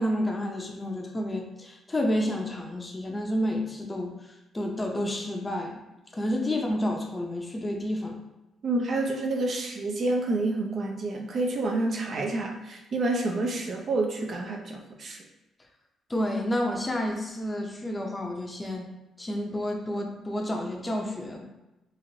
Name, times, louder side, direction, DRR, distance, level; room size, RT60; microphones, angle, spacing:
voice 1, 0.0-4.1 4.5-5.8 6.1-8.2 16.1-18.8 19.2-21.4, left 1 dB, 20° left, 1 dB, 0.6 m, -30 dB
voice 2, 8.6-15.2, right 2 dB, 55° right, 2 dB, 0.5 m, -28 dB
3.1 x 2.4 x 2.7 m, 1.0 s
cardioid pair, 90°, 0 cm